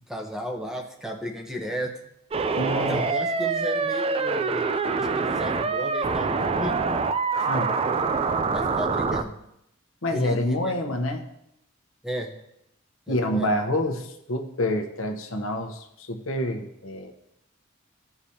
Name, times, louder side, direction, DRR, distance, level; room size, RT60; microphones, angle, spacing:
voice 1, 0.1-1.9 2.8-4.6 4.9-6.8 7.4-7.5 8.5-9.4 10.1-10.7 12.0-12.3 13.1-13.6, equal, 5° right, 2 dB, 0.9 m, -34 dB
sound 1, 2.3-9.2, right 4 dB, 30° right, 0.4 m, -25 dB
voice 2, 2.6-3.0 7.5-7.8 10.0-11.3 13.1-17.1, left 1 dB, 85° left, 4 dB, 1.0 m, -27 dB
14.5 x 4.9 x 2.8 m, 0.81 s
head